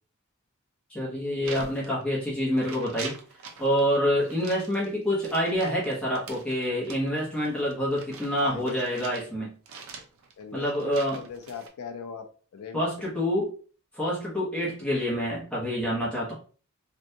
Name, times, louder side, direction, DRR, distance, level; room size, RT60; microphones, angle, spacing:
voice 1, 0.9-3.1 3.6-9.5 10.5-11.2 12.7-13.5 13.9-16.3, equal, 5° left, -6 dB, 1.0 m, -27 dB
sound 1, 1.4-2.3 2.6-3.8 4.2-9.3 9.7-11.7, right 5 dB, 70° right, 0.6 m, -44 dB
voice 2, 8.4-9.1 10.4-13.1, left 6 dB, 75° left, 7 dB, 0.4 m, -41 dB
3.4 x 2.6 x 2.7 m, 0.40 s
head